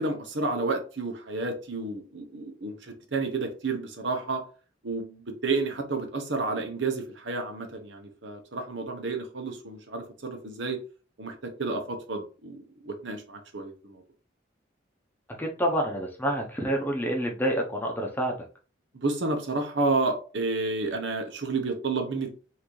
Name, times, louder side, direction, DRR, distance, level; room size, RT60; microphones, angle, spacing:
voice 1, 0.0-4.4 4.8-10.8 11.2-14.0 18.9-22.3, right 3 dB, 70° right, 5 dB, 1.0 m, -31 dB
voice 2, 15.4-18.3, equal, 10° left, 1 dB, 0.9 m, -28 dB
5.8 x 2.8 x 3.2 m, 0.37 s
head